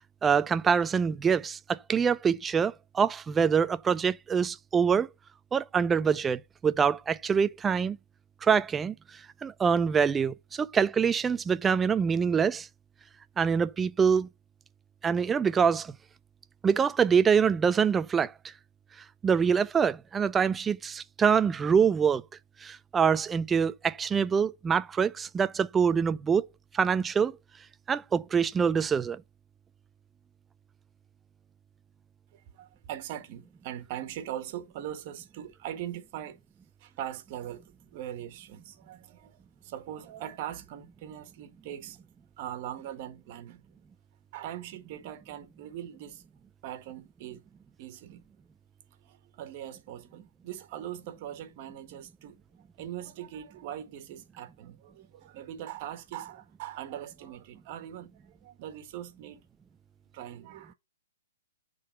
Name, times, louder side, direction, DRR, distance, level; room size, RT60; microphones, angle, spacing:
voice 1, 0.2-5.1 5.5-8.0 8.4-8.9 9.4-12.7 13.4-14.3 15.0-15.9 16.6-18.3 19.2-22.2 22.6-26.5 26.7-27.4 27.9-29.2, right 6 dB, 10° right, 0.4 m, -25 dB
voice 2, 32.3-36.4 36.8-42.0 42.4-43.6 44.3-46.2 46.6-47.4 47.8-48.2 49.0-52.4 52.8-59.4 60.1-60.7, right 11 dB, 35° right, 1.6 m, -41 dB
9.9 x 3.9 x 5.6 m
hypercardioid pair, 155°, 0 cm